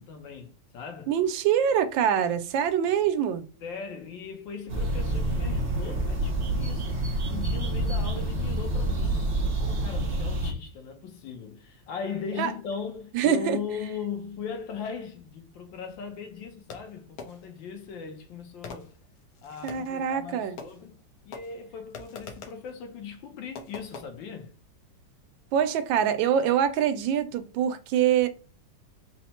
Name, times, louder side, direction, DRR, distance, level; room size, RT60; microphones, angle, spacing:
voice 1, 0.0-1.1 3.6-18.9 19.4-21.0 21.2-24.5, left 6 dB, 80° left, 1.6 m, -38 dB
voice 2, 1.1-3.5 12.4-12.5 13.1-13.6 19.6-20.6 25.5-28.3, right 9 dB, 85° right, 1.3 m, -24 dB
sound 1, 4.7-10.5, right 1 dB, 45° right, 0.8 m, -27 dB
Fireworks, 16.7-17.7 18.6-20.0 20.6-21.0 21.3-22.7 23.6-24.1, left 4 dB, 60° left, 1.0 m, -44 dB
4.2 x 2.1 x 4.2 m
omnidirectional pair, 2.0 m